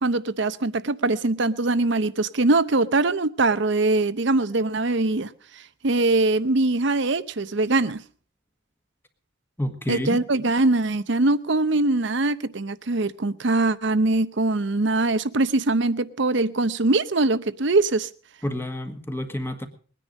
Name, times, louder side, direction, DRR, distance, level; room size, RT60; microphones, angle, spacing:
voice 1, 0.0-5.3 5.8-8.0 9.9-18.1, right 2 dB, 60° right, 0.8 m, -22 dB
voice 2, 9.6-10.2 18.4-19.7, left 1 dB, 10° left, 1.6 m, -29 dB
21.0 x 10.0 x 5.2 m
head